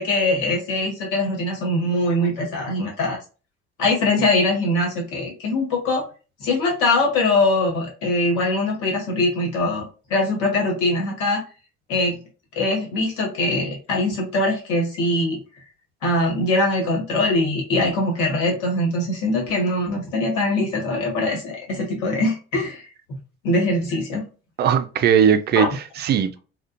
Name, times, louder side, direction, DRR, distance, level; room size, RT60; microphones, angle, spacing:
voice 1, 0.0-3.2 3.8-6.1 6.4-9.8 10.1-11.4 11.9-12.2 12.5-15.4 16.0-22.9 23.4-24.2 25.5-25.7, left 2 dB, 65° left, 1.3 m, -22 dB
voice 2, 24.6-26.4, right 8 dB, 30° right, 0.4 m, -19 dB
2.4 x 2.3 x 2.5 m
figure-of-eight pair, 50°, 33 cm